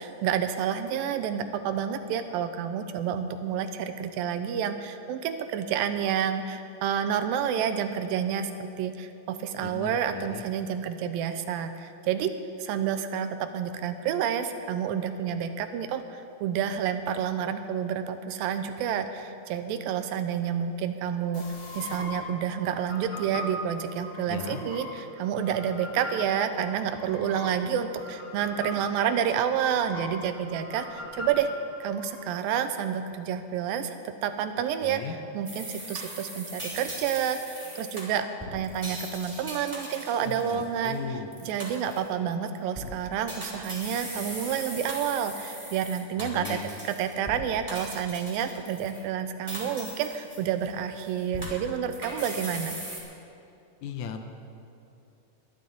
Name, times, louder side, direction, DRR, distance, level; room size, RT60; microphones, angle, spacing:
voice 1, 0.0-12.3 12.6-21.4 21.8-31.5 31.8-46.6 46.8-52.8, right 8 dB, 85° right, 9 dB, 2.5 m, -29 dB
voice 2, 9.6-10.4 24.3-24.6 34.8-35.2 40.3-41.3 46.2-46.6 53.8-54.2, left 7 dB, 75° left, 6 dB, 1.8 m, -37 dB
sound 1, 21.3-32.1, left 2 dB, 45° left, 3.7 m, -41 dB
sound 2, 35.5-41.0 41.3-42.1 42.6-42.9 43.3-47.4 47.7-49.0 49.5-50.7 51.0-53.0, right 1 dB, 10° right, 2.2 m, -39 dB
21.0 x 11.5 x 4.0 m, 2.7 s
omnidirectional pair, 4.1 m